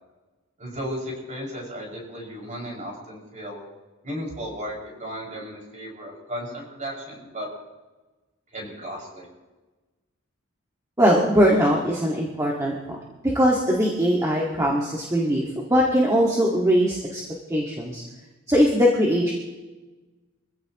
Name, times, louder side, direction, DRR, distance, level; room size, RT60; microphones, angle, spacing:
voice 1, 0.6-3.6 4.0-7.5 8.5-9.3, equal, 35° right, -2 dB, 5.8 m, -35 dB
voice 2, 11.0-13.0 13.2-15.4 15.7-17.2 17.5-18.0 18.5-19.3, equal, 15° right, -3 dB, 1.8 m, -21 dB
25.0 x 15.5 x 3.0 m, 1.2 s
head